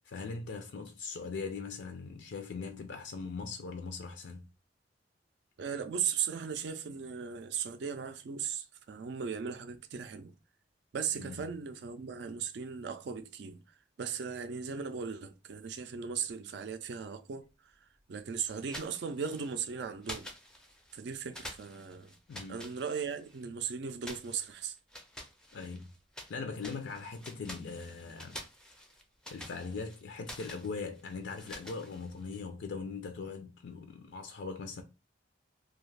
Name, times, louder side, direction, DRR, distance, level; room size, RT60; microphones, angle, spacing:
voice 1, 0.1-4.4 11.1-11.5 22.3-22.7 25.5-25.9 26.3-28.4 29.3-34.8, left 4 dB, 70° left, 0.4 m, -40 dB
voice 2, 5.6-10.3 10.9-13.6 14.0-17.5 18.1-20.3 20.9-22.1 22.5-24.8, right 7 dB, 65° right, 0.4 m, -37 dB
sound 1, 18.6-19.7 20.0-21.0 21.3-23.4 24.0-26.3 26.6-32.4, equal, 5° left, 0.4 m, -48 dB
2.4 x 2.3 x 3.2 m
head